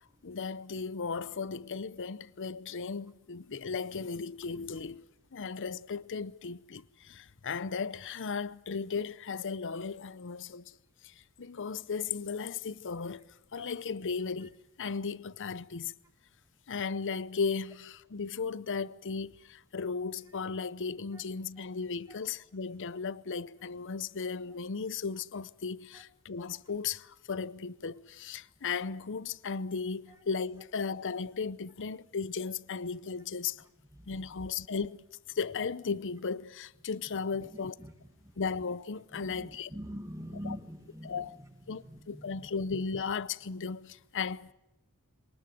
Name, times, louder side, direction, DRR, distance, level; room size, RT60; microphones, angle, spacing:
voice 1, 0.2-5.0 5.3-10.6 11.4-13.2 13.5-15.9 16.7-33.6 34.1-35.0 35.4-37.8 38.4-39.7 40.4-40.6 41.0-41.3 41.7-44.5, left 5 dB, 55° left, 0.7 m, -36 dB
voice 2, 33.9-34.3 37.3-37.5 37.8-37.9 38.2-38.3 39.1-42.5, equal, 15° right, 2.1 m, -45 dB
23.5 x 19.5 x 7.8 m
head